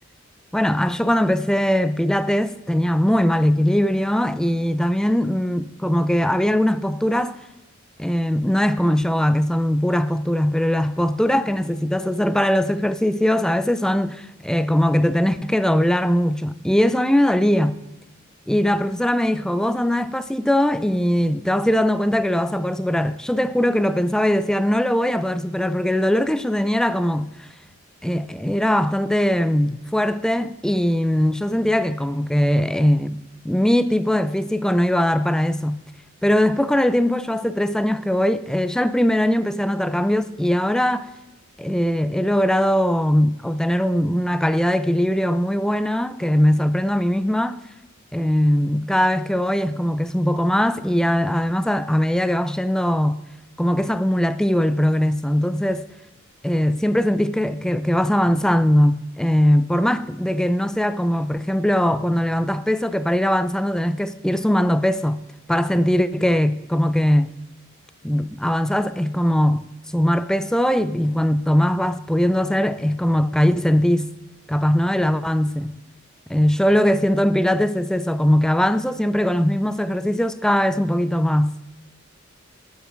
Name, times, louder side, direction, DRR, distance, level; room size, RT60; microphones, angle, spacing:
voice 1, 0.5-7.4 8.0-17.8 18.5-27.5 28.0-35.8 36.2-41.1 41.6-47.6 48.1-53.2 53.6-55.9 56.4-65.2 65.5-67.3 68.0-69.7 69.9-74.1 74.5-75.7 76.3-81.5, equal, 5° left, 0.4 m, -20 dB
18.5 x 8.1 x 5.0 m
head